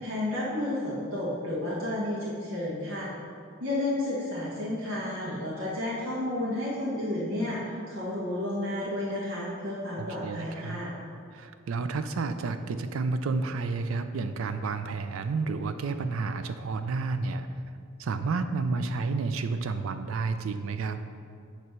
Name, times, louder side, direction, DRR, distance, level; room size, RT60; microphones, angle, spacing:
voice 1, 0.0-3.1 3.6-10.9, left 1 dB, 85° right, -8 dB, 1.5 m, -31 dB
voice 2, 10.0-10.8 11.3-17.5 18.0-21.0, right 4 dB, 70° right, 9 dB, 0.4 m, -31 dB
9.4 x 3.3 x 6.0 m, 2.4 s
head